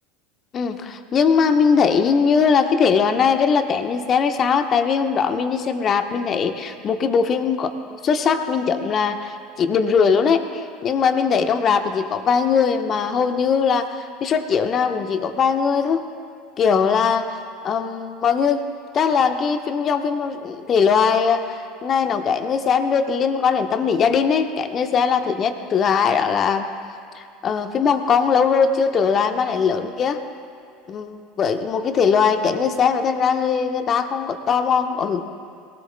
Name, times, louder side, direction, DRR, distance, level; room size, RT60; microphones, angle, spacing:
voice 1, 0.5-7.7 8.0-16.0 16.6-17.4 17.6-18.6 18.9-26.7 27.1-30.2 30.9-35.2, left 6 dB, 40° left, 7 dB, 1.0 m, -20 dB
22.0 x 17.5 x 2.2 m, 2.5 s
figure-of-eight pair, 75°, 0 cm